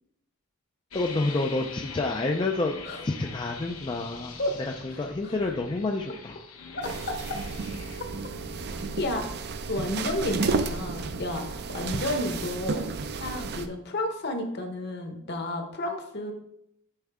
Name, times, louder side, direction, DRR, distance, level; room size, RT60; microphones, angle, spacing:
sound 1, 0.9-9.3, left 4 dB, 75° left, 1.0 m, -43 dB
voice 1, 0.9-2.8 3.0-6.4, left 2 dB, 20° left, 2 dB, 0.4 m, -29 dB
voice 2, 4.9-5.3 6.7-7.2 9.0-9.3 9.7-11.4 11.7-12.9 13.2-16.3, left 1 dB, 50° left, 4 dB, 1.1 m, -31 dB
sound 2, 6.8-13.7, right 4 dB, 50° right, 0.5 m, -32 dB
9.9 x 4.5 x 3.5 m, 0.78 s
head